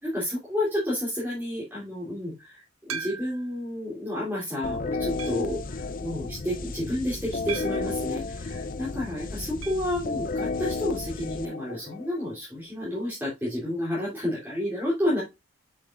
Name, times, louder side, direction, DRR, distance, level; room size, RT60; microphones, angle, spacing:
voice 1, 0.0-15.2, left 1 dB, 10° right, -7 dB, 3.1 m, -30 dB
sound 1, 2.9-3.6 4.2-4.3 5.2-5.6 7.5-8.0 9.6-9.9 10.2-10.3 10.5-10.6 12.6-12.7, right 7 dB, 80° right, 0.7 m, -38 dB
sound 2, 4.6-12.3, left 3 dB, 40° left, 0.5 m, -32 dB
8.1 x 6.5 x 2.5 m, 0.23 s
head